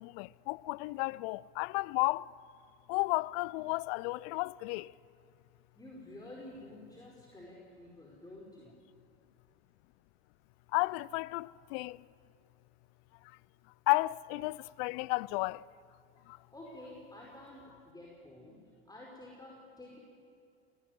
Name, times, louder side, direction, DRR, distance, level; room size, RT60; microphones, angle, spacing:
voice 1, 0.0-2.3 2.9-4.9 10.7-12.0 13.9-15.7 16.3-16.4, left 23 dB, 65° left, 0.5 m, -33 dB
voice 2, 5.7-8.7 16.2-18.6 18.8-20.0, left 1 dB, 10° left, 4.8 m, -50 dB
19.5 x 17.0 x 9.5 m
hypercardioid pair, 80°, 31 cm